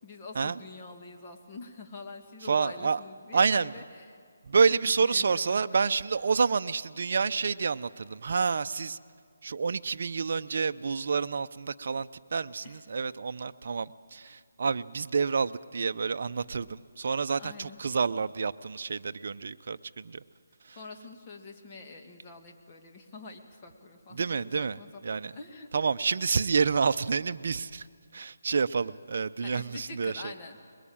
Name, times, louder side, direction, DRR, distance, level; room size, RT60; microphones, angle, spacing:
voice 1, 0.0-4.2 4.7-5.8 12.6-12.8 14.2-14.4 17.4-17.8 20.7-25.7 29.4-30.7, left 3 dB, 25° left, 2 dB, 2.1 m, -46 dB
voice 2, 2.4-3.0 3.3-3.7 4.4-9.0 9.4-20.2 20.6-20.8 24.1-25.3 25.7-27.9 28.1-30.3, right 5 dB, 55° right, 11 dB, 0.7 m, -28 dB
22.0 x 21.5 x 8.8 m, 2.1 s
hypercardioid pair, 165°, 0 cm